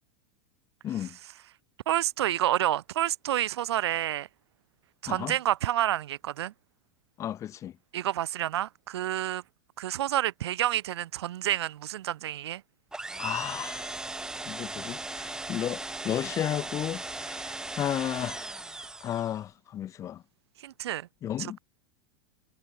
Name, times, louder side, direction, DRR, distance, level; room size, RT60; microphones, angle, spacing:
voice 1, 0.8-1.2 5.1-5.3 7.2-7.7 13.2-13.9 14.5-18.4 19.0-20.2 21.2-21.6, left 11 dB, 25° left, 2.6 m, -33 dB
voice 2, 1.9-4.3 5.0-6.5 7.9-9.4 9.8-12.6 20.6-21.1 21.4-21.6, right 13 dB, 85° right, 2.8 m, -29 dB
sound 1, 12.9-19.4, right 2 dB, 5° right, 6.2 m, -38 dB
supercardioid pair, 160°, 13 cm